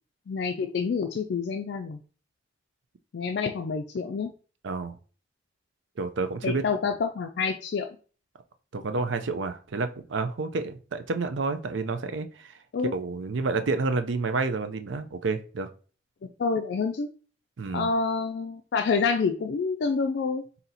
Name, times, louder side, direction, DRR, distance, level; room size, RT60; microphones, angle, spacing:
voice 1, 0.3-2.0 3.1-4.3 6.4-7.9 12.7-12.9 16.4-17.1 17.7-20.4, left 5 dB, 60° left, 0.4 m, -27 dB
voice 2, 4.6-5.0 6.0-6.9 8.7-12.5 12.9-15.7 17.6-17.9, right 3 dB, 80° right, 0.5 m, -29 dB
4.2 x 2.8 x 4.0 m
head